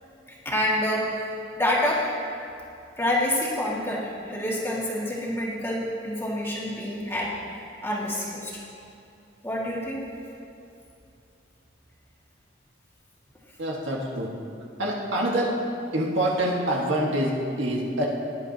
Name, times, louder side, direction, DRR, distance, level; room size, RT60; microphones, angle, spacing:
voice 1, 0.5-1.3 1.6-2.0 3.0-7.3 7.8-8.6 9.4-10.0, left 1 dB, 15° left, -5 dB, 2.0 m, -27 dB
voice 2, 13.6-14.3 14.8-15.5 15.9-18.1, right 1 dB, 80° right, -2 dB, 1.7 m, -26 dB
18.0 x 10.5 x 2.9 m, 2.6 s
head